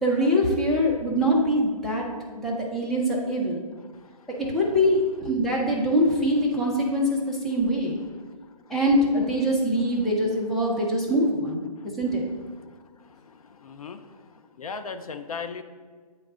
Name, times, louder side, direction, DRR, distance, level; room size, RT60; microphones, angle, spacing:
voice 1, 0.0-2.1 2.3-3.6 4.5-8.0 8.7-11.6 11.8-12.2, equal, ahead, -4 dB, 0.5 m, -23 dB
voice 2, 13.3-14.1 14.6-15.6, left 5 dB, 65° left, 9 dB, 0.5 m, -36 dB
9.0 x 3.2 x 3.6 m, 1.5 s
figure-of-eight pair, 140°, 20 cm